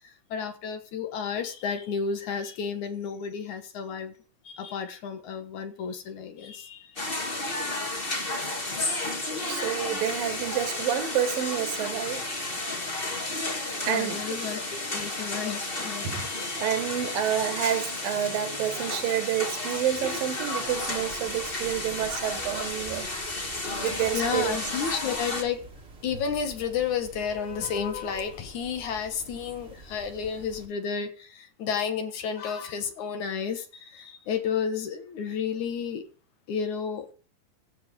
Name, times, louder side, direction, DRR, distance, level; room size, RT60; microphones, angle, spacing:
voice 1, 0.0-4.1 4.4-7.0 13.9-17.1 24.1-25.7 26.0-36.0 36.5-37.1, left 6 dB, 60° left, 2.7 m, -32 dB
sound 1, 7.0-25.4, left 2 dB, 20° left, 1.6 m, -32 dB
voice 2, 9.5-12.3 13.9-14.2 16.0-16.3 16.6-23.1 23.8-24.5, right 10 dB, 80° right, 3.3 m, -29 dB
sound 2, 20.7-30.7, right 2 dB, 25° right, 1.5 m, -48 dB
15.5 x 7.8 x 5.3 m
omnidirectional pair, 4.0 m